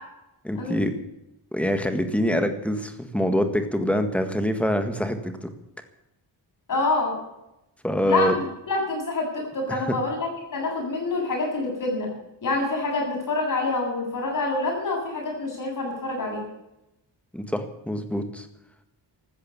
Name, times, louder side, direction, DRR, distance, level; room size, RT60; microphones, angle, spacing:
voice 1, 0.4-1.0 1.5-5.5 7.8-8.3 9.7-10.0 17.3-18.5, equal, 5° left, 7 dB, 1.7 m, -25 dB
voice 2, 6.7-7.2 8.0-12.1 12.4-16.4, left 2 dB, 50° left, 0 dB, 7.9 m, -27 dB
15.5 x 13.0 x 7.1 m, 0.88 s
wide cardioid pair, 175°, 41 cm